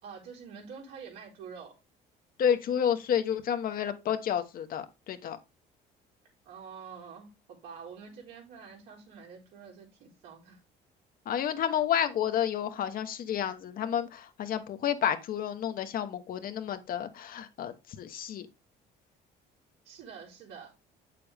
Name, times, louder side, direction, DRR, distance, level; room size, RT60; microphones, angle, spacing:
voice 1, 0.0-1.8 6.5-10.6 19.8-20.7, right 6 dB, 85° right, 4.0 m, -47 dB
voice 2, 2.4-5.4 11.2-18.5, left 9 dB, 60° left, 1.1 m, -30 dB
8.5 x 6.9 x 3.4 m
cardioid pair, 110°, 17 cm